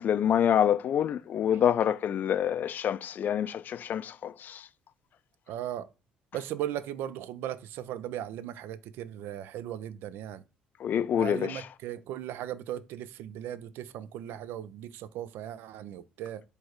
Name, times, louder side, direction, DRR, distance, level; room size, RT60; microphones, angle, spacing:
voice 1, 0.0-4.6 10.8-11.6, left 9 dB, 50° left, 0.3 m, -27 dB
voice 2, 5.5-5.9 6.3-10.4 11.2-16.4, right 11 dB, 65° right, 0.3 m, -37 dB
4.4 x 3.3 x 3.0 m
hypercardioid pair, 55°, 4 cm